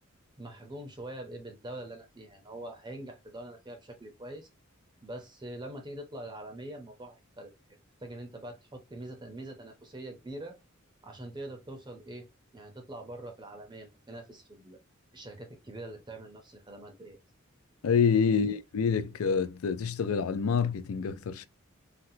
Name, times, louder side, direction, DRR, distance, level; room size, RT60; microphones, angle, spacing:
voice 1, 0.4-4.5 5.0-7.5 8.0-10.6 11.0-12.3 12.5-14.8 15.1-17.2 18.3-18.6, right 1 dB, 20° right, 0.6 m, -44 dB
voice 2, 17.8-21.5, left 6 dB, 85° left, 0.4 m, -27 dB
4.0 x 2.1 x 2.6 m
head